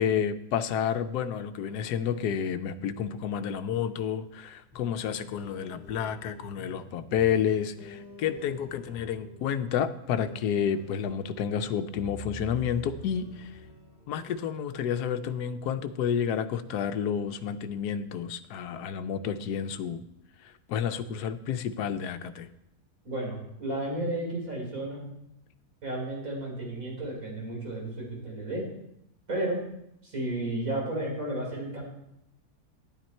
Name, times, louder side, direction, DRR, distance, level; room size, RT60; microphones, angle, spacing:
voice 1, 0.0-13.5 14.1-20.0 20.7-22.5, left 8 dB, 80° left, 10 dB, 1.2 m, -30 dB
sound 1, 4.7-14.2, left 3 dB, 30° left, 1.9 m, -47 dB
voice 2, 23.0-25.0 25.8-28.6 29.3-29.6 30.0-31.8, right 1 dB, 55° right, -2 dB, 4.1 m, -32 dB
11.0 x 9.1 x 4.4 m, 0.79 s
omnidirectional pair, 1.7 m